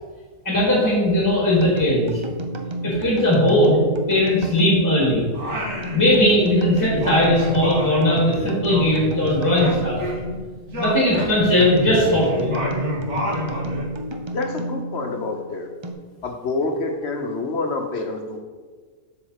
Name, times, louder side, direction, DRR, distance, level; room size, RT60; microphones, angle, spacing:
voice 1, 0.5-2.1 2.8-3.8 4.1-5.2 5.9-10.0 10.8-12.5, left 1 dB, 15° left, -5 dB, 1.8 m, -18 dB
sound 1, 1.5-15.9, right 1 dB, 35° right, 0.5 m, -32 dB
Singing, 5.3-6.5 6.7-10.4 10.7-13.9, equal, 60° right, 1.9 m, -29 dB
voice 2, 14.3-15.7 16.2-18.4, left 3 dB, 55° left, 4 dB, 1.1 m, -27 dB
7.7 x 3.9 x 6.4 m, 1.5 s
omnidirectional pair, 1.4 m